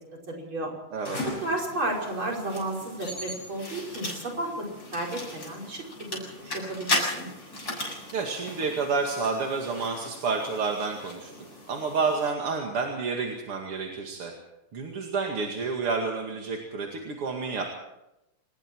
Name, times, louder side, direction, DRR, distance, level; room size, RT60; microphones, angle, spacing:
voice 1, 0.3-0.7 1.2-6.1 6.4-7.3, right 1 dB, 65° right, -1 dB, 6.4 m, -32 dB
sound 1, 1.1-12.3, left 1 dB, 45° left, 7.9 m, -36 dB
voice 2, 8.1-11.3 11.7-14.3 14.7-17.6, right 4 dB, 85° right, 1 dB, 3.2 m, -29 dB
27.0 x 20.5 x 4.7 m, 0.90 s
omnidirectional pair, 2.4 m